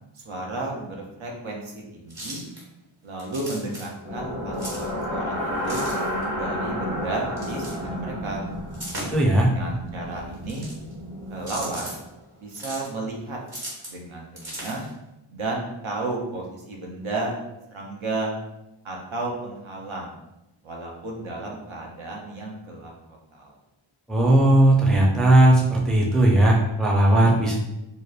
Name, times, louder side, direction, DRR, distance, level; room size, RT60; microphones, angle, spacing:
voice 1, 0.1-2.4 3.0-5.9 6.4-8.5 9.4-10.7 11.3-12.0 12.4-13.4 13.9-14.9 15.3-17.4 17.7-18.3 18.8-20.1 20.6-23.5, right 2 dB, 70° right, -1 dB, 0.6 m, -33 dB
sound 1, 2.1-2.6 3.2-3.9 4.5-4.9 5.6-6.2 7.4-7.7 8.7-9.3 10.3-10.9 11.4-12.0 12.5-12.9 13.5-14.0 14.4-14.9, right 1 dB, 45° right, 1.1 m, -37 dB
sound 2, 4.0-12.0, equal, 30° right, 0.9 m, -31 dB
voice 2, 9.1-9.5 24.1-27.6, right 1 dB, ahead, -2 dB, 0.4 m, -17 dB
2.8 x 2.0 x 2.3 m, 0.93 s
wide cardioid pair, 45°, 49 cm